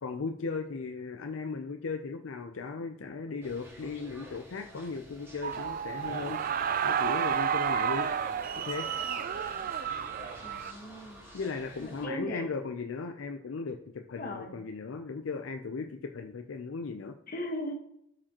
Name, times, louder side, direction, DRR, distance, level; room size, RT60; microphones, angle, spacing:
voice 1, 0.0-6.4 6.8-8.1 8.6-8.9 11.3-17.2, left 4 dB, 75° left, 6 dB, 0.5 m, -37 dB
sound 1, 3.4-12.1, equal, 10° right, 1.8 m, -50 dB
sound 2, 5.4-10.7, right 8 dB, 45° right, 0.4 m, -31 dB
voice 2, 10.4-11.2 11.8-12.4 14.2-14.5 17.3-17.7, equal, 45° left, 3 dB, 1.3 m, -38 dB
13.0 x 5.0 x 2.9 m, 0.76 s
head